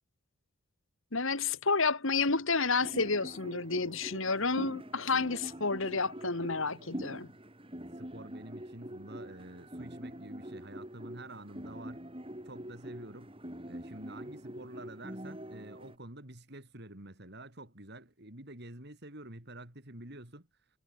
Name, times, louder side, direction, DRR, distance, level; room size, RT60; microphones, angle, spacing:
voice 1, 1.1-7.3, left 4 dB, 60° left, 2.0 m, -30 dB
sound 1, 2.8-15.9, equal, 25° right, 3.1 m, -44 dB
voice 2, 8.0-12.0 12.5-13.3 13.7-20.5, right 1 dB, 50° right, 4.1 m, -48 dB
head